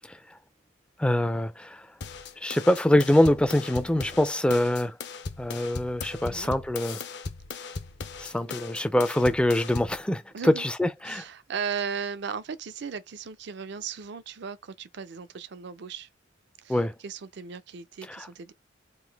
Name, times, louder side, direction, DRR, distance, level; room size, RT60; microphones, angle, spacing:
voice 1, 1.0-1.9 2.4-5.0 5.4-7.0 8.2-11.2 16.7-16.9 18.1-18.3, left 1 dB, 5° left, 0.4 m, -24 dB
sound 1, 2.0-10.0, left 4 dB, 55° left, 0.6 m, -38 dB
voice 2, 6.2-6.5 10.3-10.7 11.0-16.1 16.6-18.5, right 6 dB, 60° right, 0.5 m, -36 dB
3.9 x 2.5 x 3.3 m
head